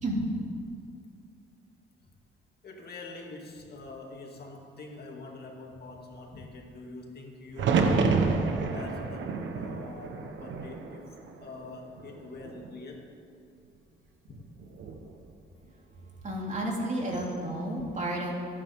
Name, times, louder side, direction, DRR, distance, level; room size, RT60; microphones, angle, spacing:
voice 1, 2.6-8.1 8.5-11.1 11.4-13.1, left 3 dB, 55° left, 0 dB, 2.6 m, -44 dB
sound 1, 7.6-11.6 12.0-12.7 14.6-15.1, right 4 dB, 70° right, 1.2 m, -29 dB
voice 2, 16.2-18.3, right 1 dB, 35° right, -2 dB, 3.0 m, -31 dB
22.0 x 10.0 x 3.7 m, 2.4 s
cardioid pair, 90°, 20 cm